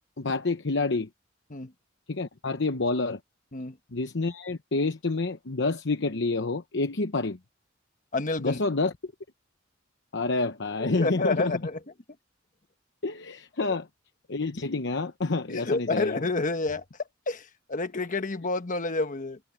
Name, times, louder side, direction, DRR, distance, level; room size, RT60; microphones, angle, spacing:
voice 1, 0.2-1.1 2.1-3.2 3.9-7.4 8.4-9.1 10.1-11.5 13.0-13.9 14.3-16.2, left 3 dB, 60° left, 1.0 m, -28 dB
voice 2, 8.1-8.6 10.8-11.8 15.5-16.8 17.3-19.4, left 3 dB, 40° left, 1.3 m, -29 dB
head